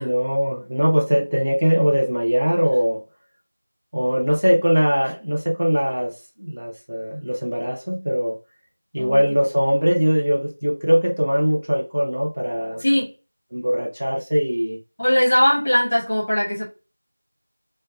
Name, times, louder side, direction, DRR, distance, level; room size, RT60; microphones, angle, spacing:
voice 1, 0.0-3.0 3.9-8.4 8.9-12.8 13.5-14.8, equal, 40° right, 0.6 m, -21 dB
voice 2, 15.0-16.6, equal, 20° left, 1.0 m, -19 dB
3.1 x 2.2 x 2.5 m
figure-of-eight pair, 175°, 0 cm